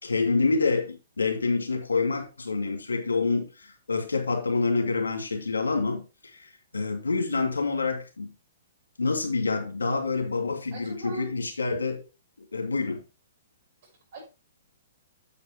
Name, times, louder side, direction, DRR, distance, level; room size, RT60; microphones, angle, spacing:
voice 1, 0.0-8.3 9.0-12.0 12.5-13.0, left 4 dB, 90° left, 2.5 m, -27 dB
voice 2, 10.7-11.3 13.8-14.2, right 3 dB, 55° right, 6.0 m, -41 dB
8.5 x 7.8 x 3.1 m
hypercardioid pair, 130°, 0 cm